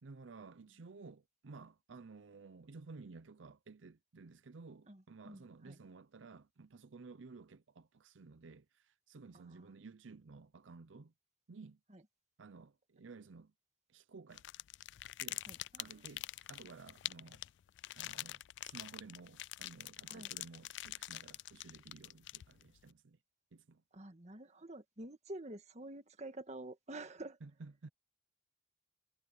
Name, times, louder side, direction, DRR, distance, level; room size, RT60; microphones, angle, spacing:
voice 1, 0.0-11.1 11.5-11.8 12.4-13.5 13.9-14.4 15.2-15.4 15.8-17.5 17.9-23.2 23.5-23.8 27.4-27.9, right 4 dB, 85° right, 0.6 m, -54 dB
voice 2, 4.9-5.8 9.3-9.7 11.9-12.0 15.4-16.0 20.1-20.3 23.9-27.4, right 2 dB, 35° right, 1.8 m, -49 dB
sound 1, 14.3-22.8, left 16 dB, 65° left, 0.3 m, -45 dB
head